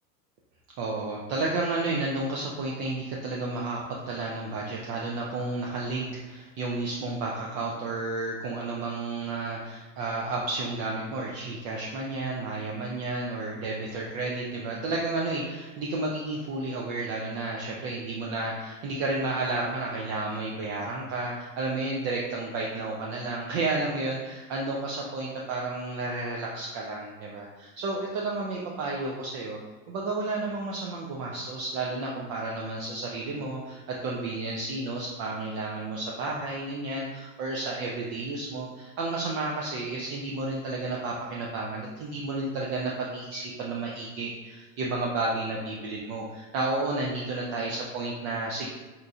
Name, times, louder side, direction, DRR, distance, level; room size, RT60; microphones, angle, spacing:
voice 1, 0.8-29.6 29.9-48.7, right 2 dB, 35° right, -2 dB, 0.4 m, -32 dB
4.1 x 2.5 x 2.4 m, 1.3 s
hypercardioid pair, 95°, 50 cm